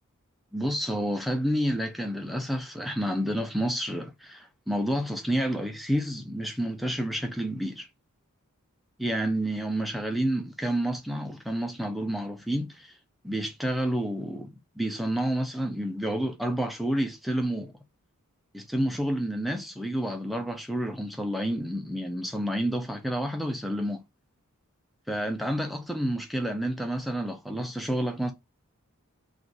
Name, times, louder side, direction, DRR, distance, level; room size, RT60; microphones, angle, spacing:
voice 1, 0.5-7.9 9.0-13.0 13.2-17.8 18.5-24.0 25.1-28.3, equal, ahead, 0.4 m, -29 dB
2.4 x 2.4 x 3.8 m
head